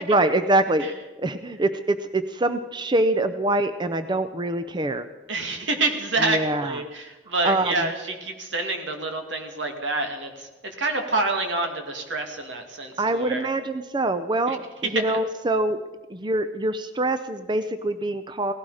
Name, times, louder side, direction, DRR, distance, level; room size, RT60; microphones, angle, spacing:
voice 1, 0.0-0.9 1.2-5.0 6.2-6.8 7.4-7.9 13.0-15.8 16.1-18.5, right 2 dB, 25° right, 10 dB, 0.6 m, -24 dB
voice 2, 5.3-13.5 14.5-14.6, right 2 dB, 75° right, 4 dB, 2.4 m, -27 dB
18.0 x 16.0 x 4.9 m, 1.2 s
head